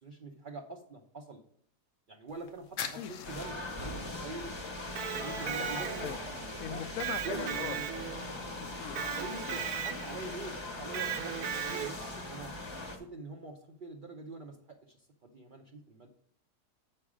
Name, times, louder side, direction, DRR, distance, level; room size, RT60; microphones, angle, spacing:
voice 1, 0.0-1.4 2.1-4.5 5.1-6.1 6.7-6.8 7.2-7.6 8.1-8.4 9.1-11.4 11.7-12.5 12.8-16.1, right 2 dB, 50° right, 2 dB, 0.6 m, -45 dB
sound 1, 2.3-11.0, left 7 dB, 90° left, 1.4 m, -48 dB
voice 2, 2.9-3.2 5.4-6.2 6.6-7.8 8.5-9.0 9.5-9.6, left 10 dB, 70° left, 14 dB, 0.9 m, -41 dB
sound 2, 3.2-13.0, left 2 dB, 20° left, 0.8 m, -40 dB
Electric guitar, 4.8-6.3 7.0-8.4 9.0-10.2 10.9-12.2, right 9 dB, 75° right, 1.1 m, -37 dB
7.2 x 5.5 x 4.8 m, 0.63 s
omnidirectional pair, 1.7 m